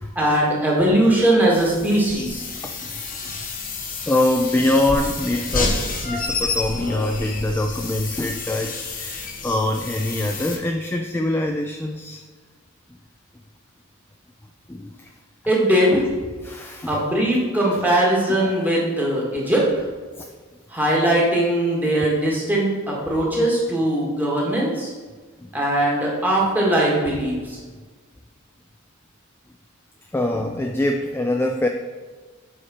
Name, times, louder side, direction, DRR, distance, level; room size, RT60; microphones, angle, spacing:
voice 1, 0.1-2.4 15.5-16.0 16.9-19.7 20.7-24.9 25.5-27.6, right 1 dB, 10° right, -4 dB, 1.6 m, -20 dB
sound 1, 1.5-10.6, left 3 dB, 40° left, 1.1 m, -29 dB
voice 2, 3.9-12.2 14.7-15.1 15.9-16.0 16.4-17.0 17.7-17.8 20.2-20.3 20.9-21.0 25.4-25.5 30.1-31.7, left 1 dB, 10° left, 3 dB, 0.3 m, -24 dB
7.7 x 5.1 x 4.2 m, 1.4 s
head